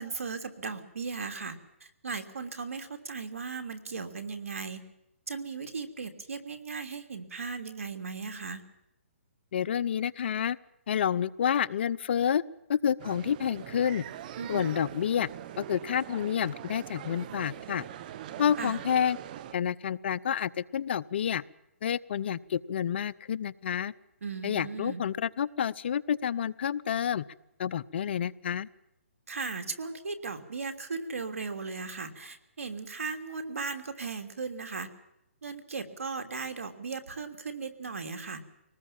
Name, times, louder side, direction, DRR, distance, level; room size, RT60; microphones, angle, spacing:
voice 1, 0.0-4.8 5.3-8.6 14.4-14.7 18.6-18.8 24.2-25.0 29.3-34.9 35.4-38.4, right 4 dB, 80° right, 7 dB, 3.0 m, -37 dB
voice 2, 9.5-10.6 10.9-12.4 12.7-14.0 14.5-15.3 15.6-17.8 18.4-19.2 19.5-21.4 21.8-23.9 24.4-27.2 27.6-28.7, left 8 dB, 50° left, 17 dB, 0.7 m, -29 dB
sound 1, 13.0-19.5, right 11 dB, 40° right, 1.3 m, -42 dB
23.0 x 19.5 x 7.4 m, 0.86 s
hypercardioid pair, 155°, 7 cm